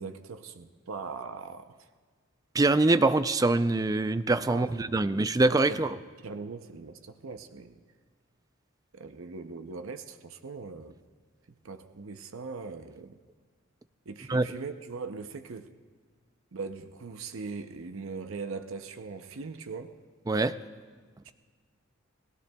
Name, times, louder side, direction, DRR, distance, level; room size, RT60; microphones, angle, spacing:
voice 1, 0.0-1.7 4.5-5.1 5.7-5.8 6.2-7.8 8.9-11.0 11.6-13.2 14.1-15.7 16.5-20.0 21.2-21.3, right 4 dB, 70° right, 0.6 m, -40 dB
voice 2, 2.5-6.0 14.3-14.5 20.3-20.5, right 2 dB, 15° right, 0.3 m, -24 dB
29.0 x 18.0 x 2.3 m
head